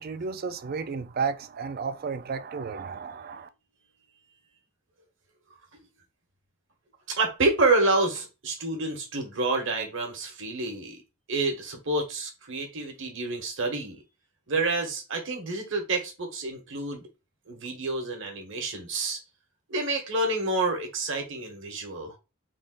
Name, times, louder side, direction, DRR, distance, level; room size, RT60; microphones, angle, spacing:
voice 1, 0.0-3.5, right 5 dB, 50° right, 0.4 m, -33 dB
voice 2, 7.1-11.0 11.3-14.0 14.5-17.1 17.5-19.2 19.7-22.1, right 2 dB, 65° right, 1.2 m, -28 dB
3.6 x 2.5 x 3.7 m
head